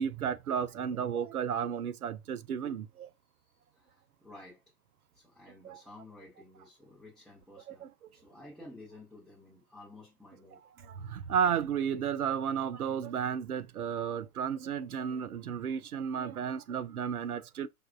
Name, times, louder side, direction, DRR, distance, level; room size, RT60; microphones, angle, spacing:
voice 1, 0.0-3.1 5.6-5.8 7.7-7.9 10.9-17.7, right 7 dB, 75° right, 0.5 m, -33 dB
voice 2, 3.7-4.6 5.1-10.6, left 2 dB, ahead, 0.7 m, -53 dB
5.1 x 2.3 x 2.2 m
figure-of-eight pair, 105°, 45 cm